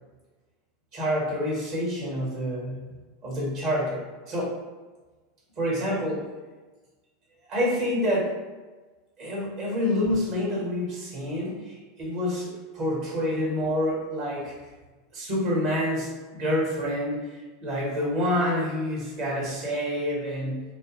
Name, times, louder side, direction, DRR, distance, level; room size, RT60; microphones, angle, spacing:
voice 1, 0.9-2.8 3.2-4.6 5.6-6.2 7.5-8.4 9.2-14.5 15.1-20.6, equal, 50° right, -5 dB, 1.3 m, -28 dB
2.5 x 2.0 x 3.0 m, 1.3 s
hypercardioid pair, 90°, 0 cm